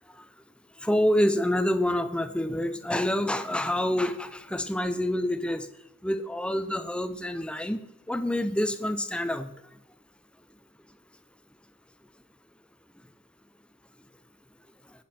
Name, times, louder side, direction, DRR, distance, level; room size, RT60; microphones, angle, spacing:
voice 1, 0.8-5.7 6.0-7.8 8.1-9.5, left 1 dB, 5° left, 10 dB, 0.6 m, -27 dB
19.0 x 7.8 x 4.3 m, 0.87 s
head